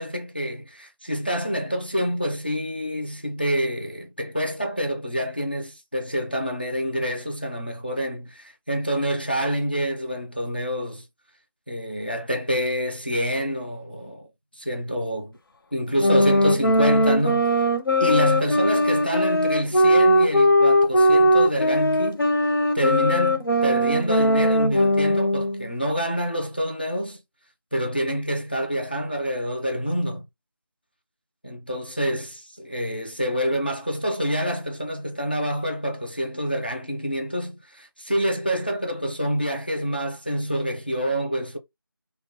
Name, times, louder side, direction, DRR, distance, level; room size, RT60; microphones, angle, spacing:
voice 1, 0.0-11.0 11.7-14.3 14.5-15.4 15.7-17.5 18.0-22.3 22.7-27.2 27.7-30.3 31.4-41.6, equal, 25° left, 0.4 m, -27 dB
sound 1, 16.0-25.7, equal, 65° left, 0.6 m, -19 dB
2.2 x 2.1 x 2.8 m
figure-of-eight pair, 170°, 12 cm